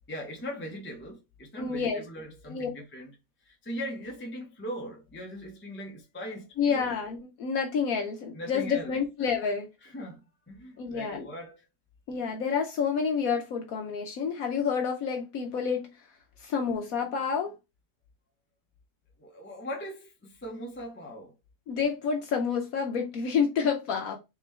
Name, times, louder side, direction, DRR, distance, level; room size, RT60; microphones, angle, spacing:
voice 1, 0.1-3.1 3.4-6.9 8.3-9.0 9.8-11.6 19.2-21.3, equal, 10° left, 0.6 m, -40 dB
voice 2, 1.6-2.0 2.5-2.7 6.6-9.7 10.8-11.3 12.1-15.9 16.4-17.5 21.7-24.2, left 6 dB, 65° left, 1.0 m, -29 dB
3.7 x 3.6 x 3.1 m
omnidirectional pair, 1.7 m